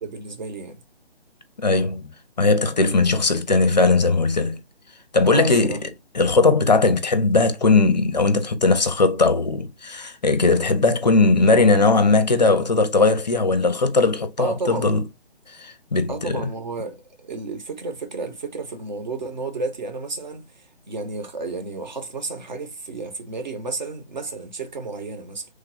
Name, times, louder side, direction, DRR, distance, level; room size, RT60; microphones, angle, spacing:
voice 1, 0.0-0.8 5.2-5.8 14.4-14.9 16.1-25.5, right 3 dB, 45° right, 0.9 m, -32 dB
voice 2, 1.6-2.1 2.4-4.6 5.1-5.9 6.1-15.0 15.5-16.5, left 3 dB, 45° left, 0.5 m, -19 dB
3.2 x 2.2 x 3.7 m
figure-of-eight pair, 145°, 32 cm